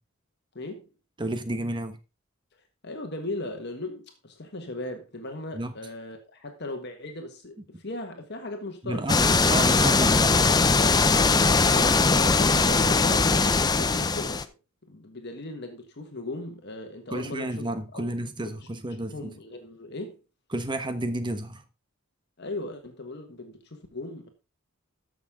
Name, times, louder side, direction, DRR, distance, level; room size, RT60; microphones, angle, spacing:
voice 1, 0.5-0.9 2.8-9.3 10.6-11.1 11.7-14.6 14.9-18.7 19.0-20.2 22.4-24.3, left 2 dB, 50° left, 1.5 m, -38 dB
voice 2, 1.2-2.0 5.5-5.7 7.7-7.8 8.8-10.4 11.6-11.9 17.1-19.3 20.5-21.6, right 1 dB, 20° right, 1.1 m, -31 dB
sound 1, 9.1-14.4, left 4 dB, 20° left, 0.5 m, -21 dB
13.5 x 6.4 x 3.6 m
head